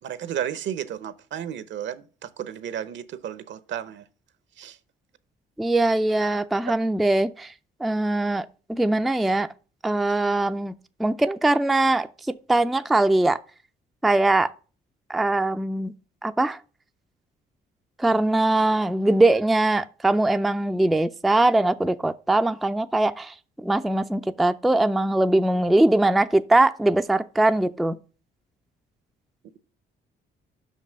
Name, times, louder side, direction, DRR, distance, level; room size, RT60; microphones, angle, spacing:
voice 1, 0.0-4.0 4.6-4.8, right 9 dB, 70° right, 0.8 m, -33 dB
voice 2, 5.6-7.5 7.8-9.5 9.8-13.4 14.0-14.5 15.1-15.9 16.2-16.6 18.0-28.0, right 2 dB, ahead, 0.3 m, -21 dB
5.9 x 5.4 x 6.2 m
cardioid pair, 90°, 20 cm